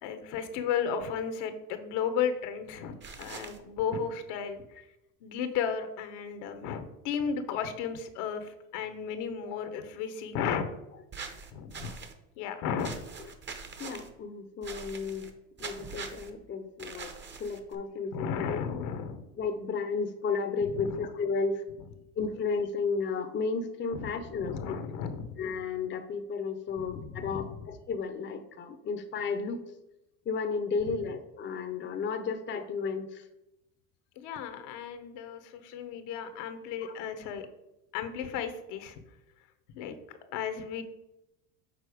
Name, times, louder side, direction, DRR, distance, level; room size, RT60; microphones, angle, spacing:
voice 1, 0.0-4.6 5.2-10.7 11.5-11.9 12.4-13.0 18.1-19.2 20.7-21.0 23.9-24.1 24.4-25.4 26.8-27.5 34.2-37.5 37.9-39.0 39.8-40.8, left 7 dB, 70° left, 9 dB, 1.0 m, -34 dB
sound 1, 3.0-3.6 11.1-12.1 12.8-14.1 14.6-15.3 15.6-16.3 16.8-17.8, right 5 dB, 25° right, 0.8 m, -43 dB
voice 2, 13.8-15.3 15.6-17.1 17.4-18.6 19.4-21.6 22.2-24.8 25.4-29.6 30.3-33.3 36.8-36.9, left 4 dB, 25° left, 8 dB, 0.7 m, -33 dB
6.7 x 4.2 x 4.9 m, 0.91 s
supercardioid pair, 110°, 43 cm